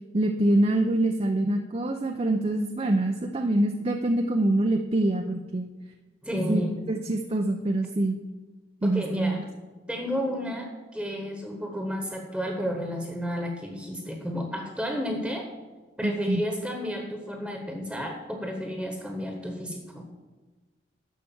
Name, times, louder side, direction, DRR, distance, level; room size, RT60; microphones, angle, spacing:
voice 1, 0.1-5.7 6.5-6.6 6.9-8.2 8.8-9.4 16.0-16.4, right 1 dB, 30° right, 4 dB, 0.6 m, -25 dB
voice 2, 6.2-6.8 8.8-9.4 9.9-15.5 16.0-20.1, equal, ahead, 2 dB, 1.2 m, -31 dB
11.0 x 6.7 x 7.2 m, 1.3 s
head